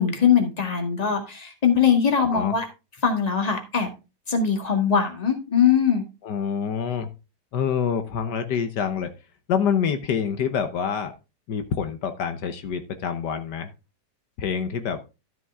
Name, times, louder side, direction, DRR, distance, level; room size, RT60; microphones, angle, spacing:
voice 1, 0.0-2.6 3.0-3.9 4.3-6.0, left 7 dB, 25° left, 4 dB, 1.8 m, -21 dB
voice 2, 6.2-7.1 7.5-9.1 9.5-11.1 11.5-13.7 14.4-15.0, left 7 dB, 80° left, 8 dB, 1.6 m, -26 dB
12.5 x 6.1 x 3.6 m, 0.28 s
omnidirectional pair, 1.8 m